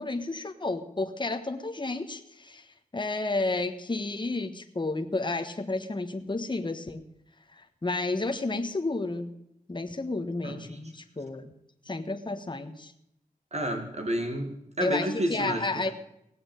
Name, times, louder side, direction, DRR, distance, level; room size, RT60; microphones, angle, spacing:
voice 1, 0.0-7.1 7.5-9.4 9.7-11.5 11.8-12.9 14.8-15.9, left 2 dB, 30° left, 5 dB, 1.4 m, -31 dB
voice 2, 10.4-10.8 13.5-15.7, equal, 50° right, 4 dB, 2.0 m, -30 dB
17.0 x 7.8 x 9.0 m, 0.78 s
wide cardioid pair, 70°, 15 cm